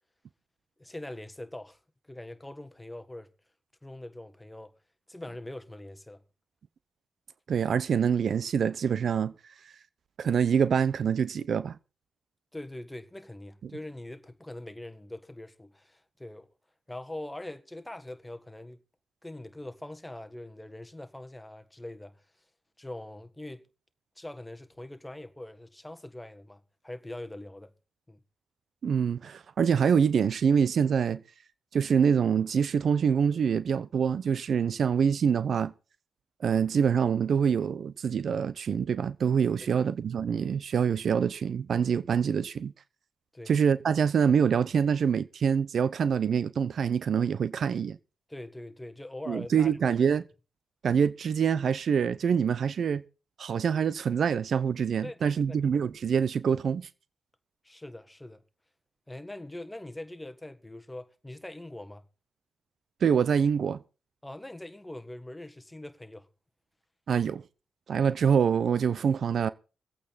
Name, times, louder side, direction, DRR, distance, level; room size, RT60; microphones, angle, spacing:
voice 1, 0.8-1.8 2.1-3.3 3.8-4.7 5.1-6.2 12.5-16.5 16.9-18.8 19.2-22.2 22.8-23.7 24.2-27.7 28.1-28.2 39.6-39.9 43.3-43.5 48.3-49.7 55.0-55.6 57.6-58.4 59.1-62.0 64.2-66.3, left 1 dB, 15° left, 1.6 m, -42 dB
voice 2, 7.5-9.3 10.2-11.8 13.6-13.7 28.8-31.2 31.7-35.7 36.4-42.7 43.5-48.0 49.3-50.2 50.8-53.0 53.4-56.9 63.0-63.8 67.1-67.4 67.9-69.5, right 7 dB, 65° right, 0.7 m, -25 dB
23.5 x 8.5 x 4.1 m
supercardioid pair, 50°, 0 cm